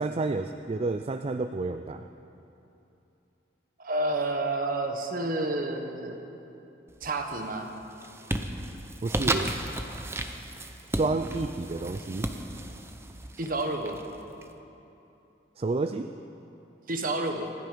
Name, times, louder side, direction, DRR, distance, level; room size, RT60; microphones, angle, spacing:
voice 1, 0.0-2.0 9.0-9.5 10.9-12.3 15.6-16.1, right 3 dB, 35° right, 8 dB, 0.4 m, -30 dB
voice 2, 3.8-6.2 7.0-7.7 13.4-14.0 16.9-17.5, right 2 dB, 50° right, 5 dB, 1.3 m, -30 dB
sound 1, 6.9-7.4 7.8-14.4, right 1 dB, 15° right, 0.7 m, -34 dB
26.5 x 9.2 x 5.2 m, 2.9 s
head